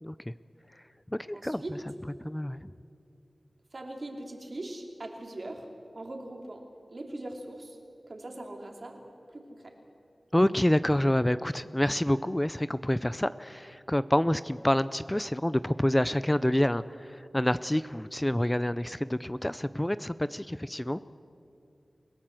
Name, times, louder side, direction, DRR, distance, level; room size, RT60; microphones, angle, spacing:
voice 1, 0.0-0.3 1.1-1.6 2.2-2.7 10.3-21.0, left 1 dB, 15° left, 15 dB, 0.5 m, -27 dB
voice 2, 1.3-1.8 3.7-5.7 5.9-7.8 8.1-9.0 9.3-9.7, right 1 dB, 55° right, 2 dB, 3.1 m, -41 dB
29.5 x 17.5 x 7.7 m, 2.5 s
wide cardioid pair, 70°, 0 cm